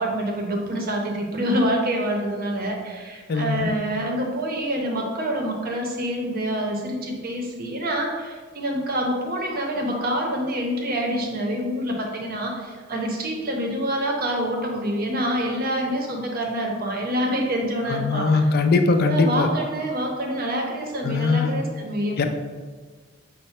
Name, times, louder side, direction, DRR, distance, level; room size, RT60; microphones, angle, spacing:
voice 1, 0.0-18.4 19.0-22.3, equal, 50° right, 1 dB, 0.7 m, -26 dB
voice 2, 3.3-3.7 17.9-19.5 21.0-21.6 22.2-22.3, left 3 dB, 50° left, 6 dB, 0.4 m, -21 dB
5.6 x 2.1 x 4.2 m, 1.4 s
head